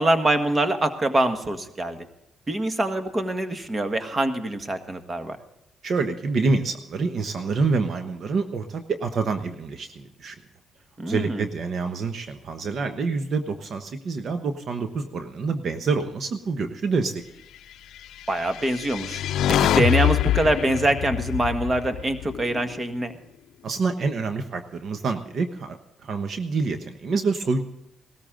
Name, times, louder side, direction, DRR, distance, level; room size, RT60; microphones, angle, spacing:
voice 1, 0.0-2.0 2.5-5.4 11.0-11.4 18.3-19.2 19.6-23.1, right 1 dB, 25° right, 8 dB, 1.6 m, -24 dB
voice 2, 5.8-10.4 11.1-17.2 23.6-27.6, right 4 dB, 55° right, 7 dB, 1.0 m, -27 dB
sound 1, 18.4-22.7, left 11 dB, 80° left, 0.5 m, -24 dB
18.5 x 14.0 x 3.8 m, 0.85 s
cardioid pair, 90°, 0 cm